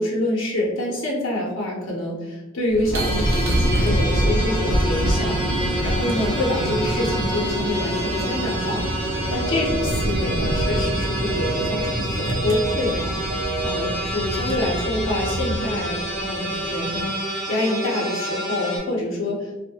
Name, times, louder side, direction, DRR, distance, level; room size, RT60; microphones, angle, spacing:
voice 1, 0.0-5.4 5.8-8.8 9.3-19.5, left 1 dB, 70° left, -3 dB, 0.6 m, -26 dB
sound 1, 2.7-17.1, right 1 dB, 90° right, 0.4 m, -26 dB
sound 2, 2.9-18.8, equal, 10° left, 0.9 m, -29 dB
sound 3, 9.3-9.8 10.3-10.8 11.3-11.8 12.3-12.8 13.3-13.8, right 3 dB, 15° right, 0.6 m, -30 dB
2.2 x 2.1 x 2.7 m, 1.0 s
head